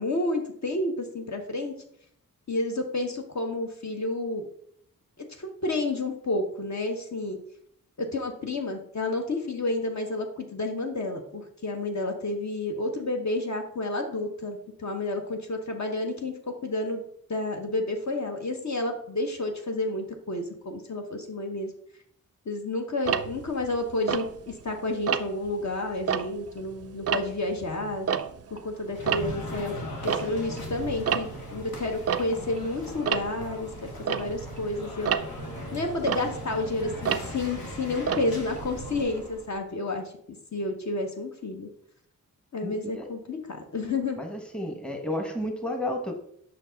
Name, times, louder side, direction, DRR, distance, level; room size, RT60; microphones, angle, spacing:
voice 1, 0.0-1.7 2.5-4.5 5.4-7.4 8.0-17.0 17.3-21.7 22.5-28.1 28.5-29.7 30.0-35.1 35.7-41.7 42.5-44.2, left 2 dB, 50° left, 4 dB, 0.9 m, -30 dB
Tick-tock, 23.1-24.7 25.1-25.5 25.9-28.7 28.9-39.0, right 8 dB, 45° right, 0.4 m, -31 dB
sound 1, 28.9-39.6, left 1 dB, 85° left, 1.2 m, -39 dB
voice 2, 42.6-43.1 44.2-46.2, left 1 dB, 5° left, 4 dB, 1.0 m, -32 dB
5.5 x 4.5 x 3.8 m, 0.68 s
cardioid pair, 55°, 36 cm